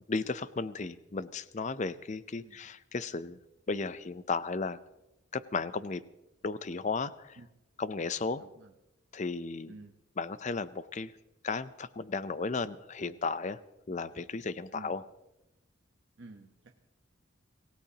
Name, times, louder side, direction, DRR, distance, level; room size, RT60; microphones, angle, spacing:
voice 1, 0.1-3.4 3.7-4.8 5.3-6.0 6.4-7.4 7.8-8.4 9.1-9.8 10.2-11.1 11.4-13.6 13.9-15.0, left 4 dB, 35° left, 15 dB, 0.5 m, -34 dB
voice 2, 8.4-8.7 9.7-9.9 14.7-15.0 16.2-16.5, right 2 dB, 60° right, 2 dB, 1.0 m, -50 dB
26.5 x 16.5 x 2.9 m, 0.93 s
head